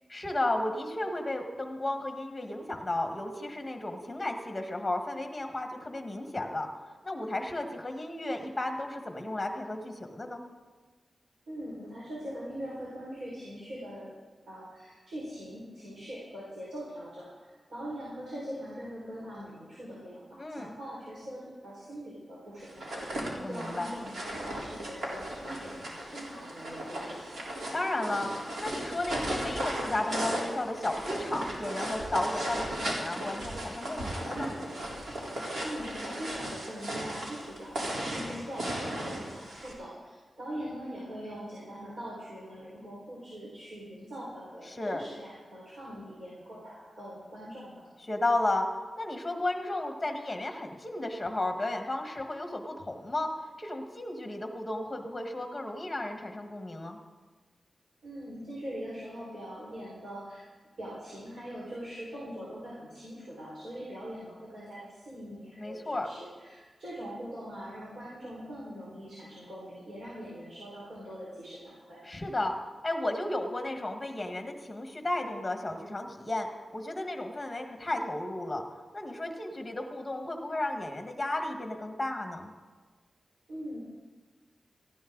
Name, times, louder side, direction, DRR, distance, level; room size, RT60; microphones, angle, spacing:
voice 1, 0.1-6.7 7.0-10.4 20.4-20.7 23.4-23.9 27.7-28.3 28.6-34.5 44.7-45.0 48.1-48.7 49.0-53.3 53.6-57.0 65.6-66.1 72.0-72.6 72.8-76.5 76.7-78.6 78.9-82.5, left 2 dB, 15° left, 4 dB, 1.6 m, -33 dB
voice 2, 11.5-14.1 14.5-17.3 17.7-23.1 23.4-27.4 35.6-47.8 58.0-60.4 60.8-72.0 83.5-83.8, equal, 65° right, -6 dB, 4.8 m, -42 dB
sound 1, 22.7-39.7, right 1 dB, 80° right, 3.7 m, -36 dB
18.0 x 14.5 x 3.9 m, 1.4 s
wide cardioid pair, 175°, 0 cm